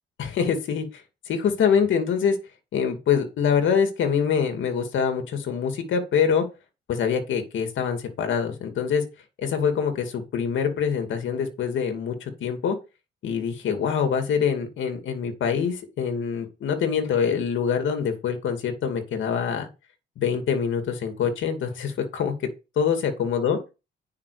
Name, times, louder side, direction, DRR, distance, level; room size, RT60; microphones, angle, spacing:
voice 1, 0.2-2.4 2.7-6.4 6.9-9.0 9.4-12.8 13.2-19.7 20.2-22.3 22.8-23.6, left 7 dB, 75° left, 6 dB, 2.4 m, -25 dB
10.0 x 5.7 x 5.0 m, 0.28 s
cardioid pair, 90°, 20 cm